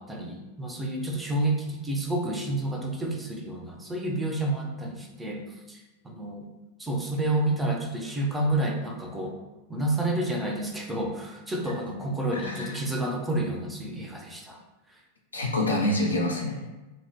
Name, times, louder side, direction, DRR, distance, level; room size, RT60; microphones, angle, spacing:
voice 1, 0.0-6.5 6.8-9.3 9.7-14.6, right 1 dB, 10° right, 0 dB, 0.4 m, -29 dB
voice 2, 12.3-12.8 15.3-16.7, left 1 dB, 75° left, -2 dB, 0.4 m, -27 dB
3.0 x 2.0 x 2.6 m, 1.1 s
figure-of-eight pair, 90°, 0 cm